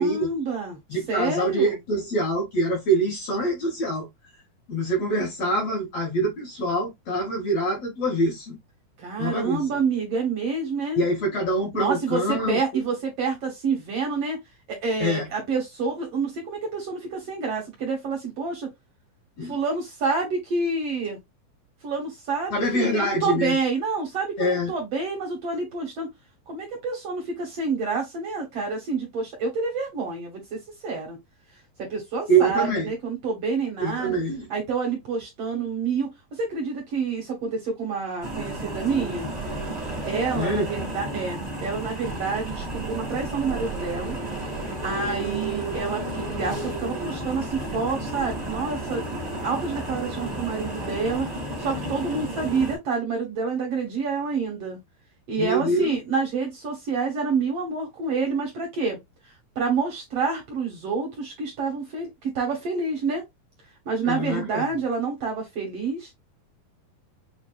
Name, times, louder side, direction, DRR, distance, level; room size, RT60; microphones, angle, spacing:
voice 1, 0.0-0.8 1.1-1.8 9.0-11.0 11.7-14.4 14.7-18.7 19.5-21.2 21.8-26.1 26.5-31.2 31.8-34.2 34.5-39.3 40.0-44.2 44.8-49.0 49.4-51.3 51.6-54.8 55.3-59.0 59.6-63.2 63.9-66.1, right 4 dB, 60° right, 1.7 m, -28 dB
voice 2, 0.9-4.1 4.7-8.6 9.2-9.6 11.0-12.8 15.0-15.3 19.4-19.6 22.5-23.6 24.4-24.7 32.3-32.9 33.8-34.5 40.3-40.7 55.4-55.9 64.0-64.7, right 1 dB, 60° left, 1.8 m, -25 dB
sound 1, 38.2-52.8, right 1 dB, 30° right, 0.7 m, -32 dB
7.1 x 2.5 x 2.3 m
omnidirectional pair, 4.4 m